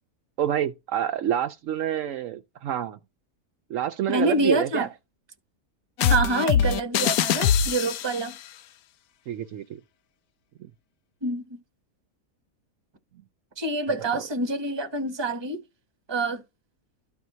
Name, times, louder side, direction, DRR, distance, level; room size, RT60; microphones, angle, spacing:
voice 1, 0.4-3.0 3.7-4.9 9.3-9.8 14.1-14.2, right 10 dB, 70° right, 0.9 m, -27 dB
voice 2, 4.1-4.9 6.1-8.3 11.2-11.6 13.6-15.6 16.1-16.4, right 2 dB, 20° right, 1.0 m, -26 dB
sound 1, 6.0-8.3, left 8 dB, 85° left, 1.1 m, -23 dB
13.5 x 4.6 x 2.7 m
omnidirectional pair, 1.5 m